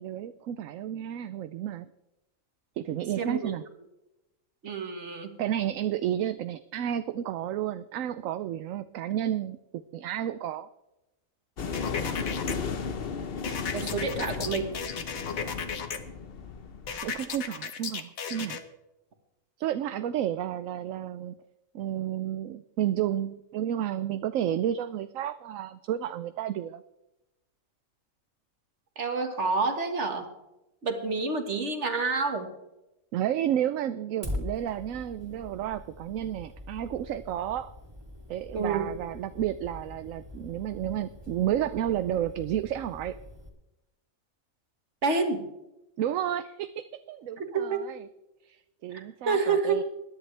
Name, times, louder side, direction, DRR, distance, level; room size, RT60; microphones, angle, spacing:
voice 1, 0.0-1.9 2.8-3.6 4.6-4.8 5.4-10.7 13.9-14.1 17.0-18.6 19.6-21.3 21.7-26.8 33.1-37.7 38.3-43.1 46.0-48.1 48.4-49.8, right 11 dB, 75° right, 12 dB, 1.0 m, -31 dB
voice 2, 3.2-3.5 4.6-5.3 13.7-14.7 29.0-30.3 30.8-32.5 38.5-38.9 45.0-45.5 47.4-47.8 48.9-49.8, right 4 dB, 60° right, 6 dB, 1.9 m, -28 dB
sound 1, 11.6-17.2, left 5 dB, 50° left, 1.1 m, -35 dB
sound 2, 11.7-12.6 13.4-16.0 16.9-18.6, left 6 dB, 90° left, 1.6 m, -35 dB
Fire, 34.2-43.5, left 1 dB, 20° right, 2.7 m, -42 dB
21.0 x 11.0 x 3.3 m, 0.94 s
omnidirectional pair, 1.4 m